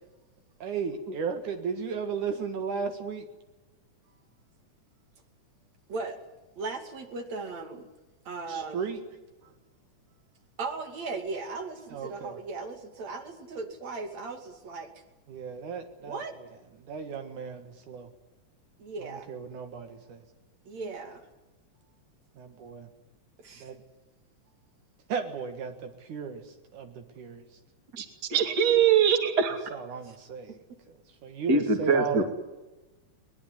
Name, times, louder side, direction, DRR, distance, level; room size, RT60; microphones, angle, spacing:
voice 1, 0.6-3.3 8.5-9.0 11.9-12.4 15.3-16.2 16.8-18.1 19.0-20.2 20.9-21.0 22.4-22.9 23.6-23.8 25.1-27.4 29.7-30.6 30.9-32.2, right 5 dB, 75° right, 6 dB, 3.3 m, -35 dB
voice 2, 5.9-6.2 6.6-7.9 8.3-8.8 9.4-9.5 10.6-14.9 16.0-16.4 18.8-19.3 20.7-21.3 23.4-23.7 30.1-30.2 30.5-30.6, right 3 dB, 60° right, 6 dB, 3.8 m, -37 dB
voice 3, 27.9-29.7 31.5-32.2, right 6 dB, 35° right, 6 dB, 2.9 m, -23 dB
22.5 x 21.0 x 9.7 m, 1.1 s
omnidirectional pair, 3.6 m